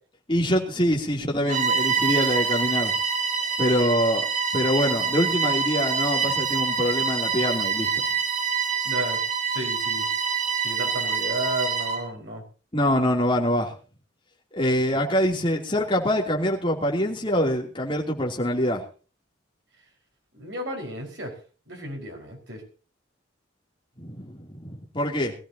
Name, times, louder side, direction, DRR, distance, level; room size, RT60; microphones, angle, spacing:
voice 1, 0.3-2.9 3.6-4.3 4.5-8.0 12.7-13.7 14.5-18.8 24.0-25.3, equal, 25° left, 0 dB, 3.0 m, -24 dB
Bowed string instrument, 1.4-12.1, right 6 dB, 35° right, 2.3 m, -26 dB
voice 2, 8.8-9.2 9.5-10.1 10.6-12.4 20.3-21.4 21.7-22.6, right 1 dB, 65° right, 2 dB, 4.9 m, -33 dB
21.5 x 14.5 x 2.8 m, 0.36 s
head